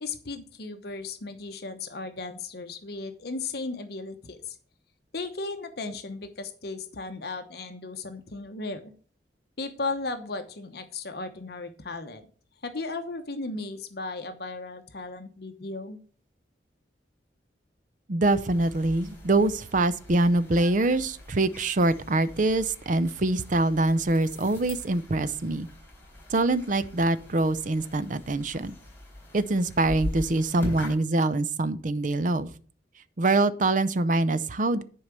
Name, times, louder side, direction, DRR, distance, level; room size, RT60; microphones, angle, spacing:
voice 1, 0.0-4.6 5.1-8.9 9.6-12.3 12.6-16.0, left 3 dB, 60° left, 7 dB, 1.0 m, -36 dB
voice 2, 18.1-25.7 26.3-28.7 29.3-32.5 33.2-34.8, right 2 dB, 45° right, 14 dB, 0.6 m, -24 dB
sound 1, 18.3-31.0, left 1 dB, 15° left, 4.0 m, -42 dB
10.5 x 4.7 x 6.7 m, 0.43 s
head